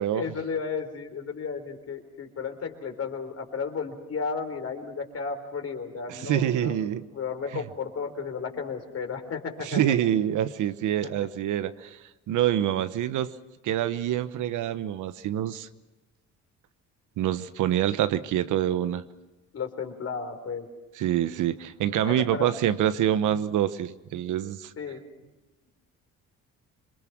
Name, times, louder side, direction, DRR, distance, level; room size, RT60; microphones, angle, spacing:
voice 1, 0.1-6.8 7.1-9.9 19.5-20.7 22.0-22.5 24.8-25.0, left 5 dB, 55° left, 5 dB, 4.0 m, -33 dB
voice 2, 6.1-7.0 7.5-7.6 9.6-12.0 12.3-13.3 13.6-15.7 17.2-19.0 21.0-24.7, right 11 dB, 85° right, 12 dB, 1.1 m, -26 dB
27.0 x 23.0 x 6.1 m, 1.1 s
cardioid pair, 90°, 30 cm